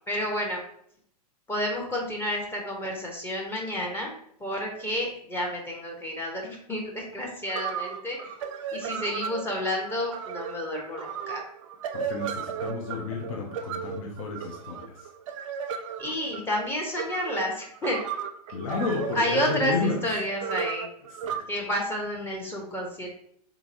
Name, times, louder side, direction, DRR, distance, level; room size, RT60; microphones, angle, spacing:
voice 1, 0.1-0.6 1.5-4.1 4.4-8.3 8.7-11.4 16.0-18.0 19.1-20.9 21.5-23.2, equal, 10° left, -1 dB, 0.6 m, -30 dB
sound 1, 7.1-7.2 7.5-21.4, right 7 dB, 50° right, 0.4 m, -35 dB
voice 2, 11.9-15.1 18.5-20.1 21.1-21.5, left 4 dB, 60° left, 1 dB, 0.6 m, -31 dB
3.6 x 2.9 x 2.5 m, 0.66 s
hypercardioid pair, 110°, 20 cm